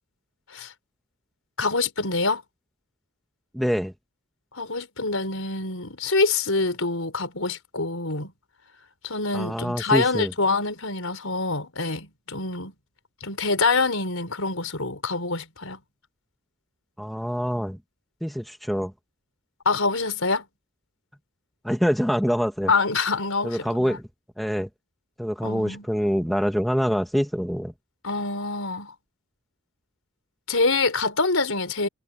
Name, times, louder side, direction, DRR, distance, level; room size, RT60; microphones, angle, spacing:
voice 1, 1.6-2.4 4.5-8.3 9.0-12.7 13.2-15.8 19.6-20.4 22.7-24.0 25.4-25.9 28.0-28.9 30.5-31.9, left 3 dB, 70° left, 4.9 m, -25 dB
voice 2, 3.5-3.9 9.3-10.3 17.0-17.8 18.2-18.9 21.6-22.7 23.4-24.1 24.4-24.7 25.2-27.7, equal, ahead, 1.3 m, -25 dB
head